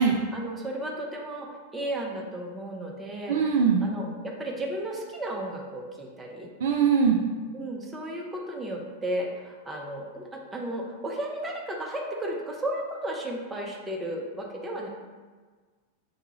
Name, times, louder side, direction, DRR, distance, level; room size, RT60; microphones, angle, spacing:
voice 1, 0.0-6.5 7.5-14.9, right 1 dB, 15° right, -1 dB, 0.6 m, -34 dB
voice 2, 3.3-3.8 6.6-7.2, right 6 dB, 60° right, 1 dB, 0.4 m, -21 dB
4.7 x 2.4 x 3.0 m, 1.4 s
figure-of-eight pair, 90°, 0 cm